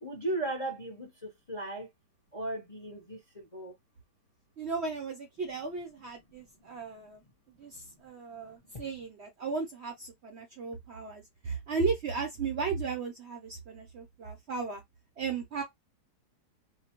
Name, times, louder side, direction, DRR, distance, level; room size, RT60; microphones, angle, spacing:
voice 1, 0.0-1.9 2.3-3.7 8.7-8.8, right 2 dB, 30° left, 0.7 m, -36 dB
voice 2, 4.6-7.2 7.6-14.8 15.2-15.6, right 4 dB, 55° right, 0.8 m, -35 dB
2.7 x 2.1 x 2.9 m
omnidirectional pair, 1.7 m